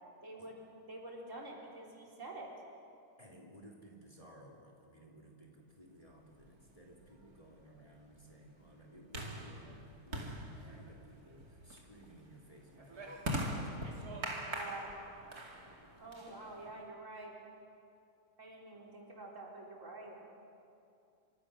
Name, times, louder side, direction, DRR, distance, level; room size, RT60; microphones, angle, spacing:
voice 1, 0.2-2.5 14.5-14.9 16.0-17.3 18.4-20.2, right 2 dB, 55° right, -2 dB, 4.4 m, -48 dB
voice 2, 3.2-14.4, right 1 dB, 20° left, -1 dB, 3.2 m, -58 dB
sound 1, 6.4-16.8, right 1 dB, 80° right, 3.1 m, -43 dB
27.5 x 25.5 x 6.4 m, 2.6 s
omnidirectional pair, 1.6 m